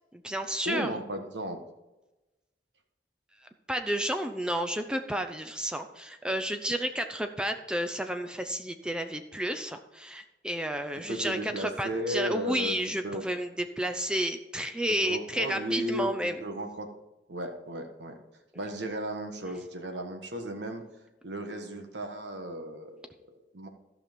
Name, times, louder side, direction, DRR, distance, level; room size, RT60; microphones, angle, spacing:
voice 1, 0.1-0.9 3.7-16.4, equal, 5° right, 6 dB, 0.5 m, -31 dB
voice 2, 0.6-1.6 11.1-12.7 13.0-13.2 15.0-16.1 16.4-16.9 17.3-18.2 18.5-20.8 21.2-23.7, equal, 90° right, 5 dB, 1.4 m, -35 dB
14.0 x 5.8 x 5.2 m, 1.0 s
head